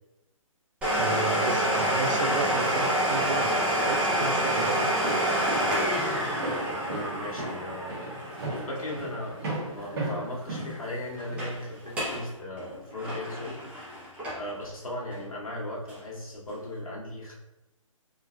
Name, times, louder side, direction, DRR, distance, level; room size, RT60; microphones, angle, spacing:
Domestic sounds home sounds, 0.8-10.2 10.5-10.6 11.2-11.5 11.8-12.2 12.6-14.6 15.1-15.2 15.9-16.0, right 1 dB, 5° right, 0.7 m, -28 dB
voice 1, 1.0-4.9, right 4 dB, 65° right, 6 dB, 0.5 m, -33 dB
Walk footsteps, 4.6-11.5, right 2 dB, 45° right, 1.3 m, -36 dB
voice 2, 6.6-13.9 14.4-17.3, left 1 dB, 85° left, -4 dB, 1.2 m, -37 dB
3.3 x 3.2 x 2.4 m, 0.95 s
hypercardioid pair, 150°, 18 cm